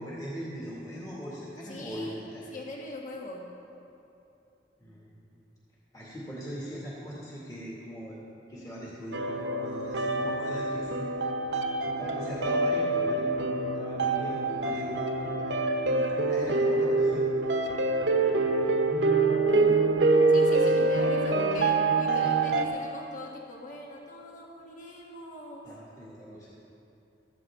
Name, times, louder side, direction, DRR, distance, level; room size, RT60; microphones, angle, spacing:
voice 1, 0.0-2.4 4.8-5.2 5.9-8.2 8.5-11.1 11.8-15.2 15.4-15.6 15.9-17.3 20.7-21.1 25.6-26.5, equal, 20° left, -6 dB, 2.1 m, -40 dB
voice 2, 1.6-2.2 2.5-3.5 19.3-19.9 20.3-25.8, left 2 dB, 45° left, -1 dB, 1.3 m, -42 dB
sound 1, 9.1-22.7, right 3 dB, 75° right, 0.9 m, -25 dB
15.5 x 13.0 x 3.7 m, 2.8 s
head